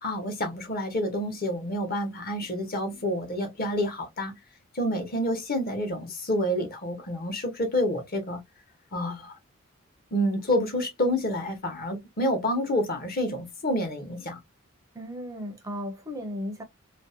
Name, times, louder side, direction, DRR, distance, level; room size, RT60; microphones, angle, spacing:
voice 1, 0.0-4.3 4.7-8.4 8.9-9.4 10.1-14.4, equal, 50° left, 0.9 m, -28 dB
voice 2, 14.9-16.6, equal, 15° right, 0.4 m, -35 dB
2.5 x 2.1 x 2.6 m
head